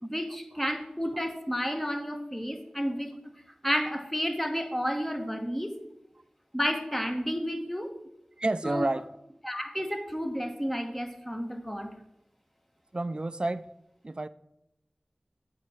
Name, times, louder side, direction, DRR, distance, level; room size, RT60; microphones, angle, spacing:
voice 1, 0.0-3.1 3.6-5.7 6.5-7.9 8.6-8.9 9.4-11.9, equal, 10° left, 4 dB, 1.2 m, -31 dB
voice 2, 8.4-9.2 12.9-13.7 14.0-14.3, right 2 dB, 40° right, 15 dB, 0.4 m, -29 dB
8.0 x 4.7 x 5.7 m, 0.84 s
wide cardioid pair, 50°, 3 cm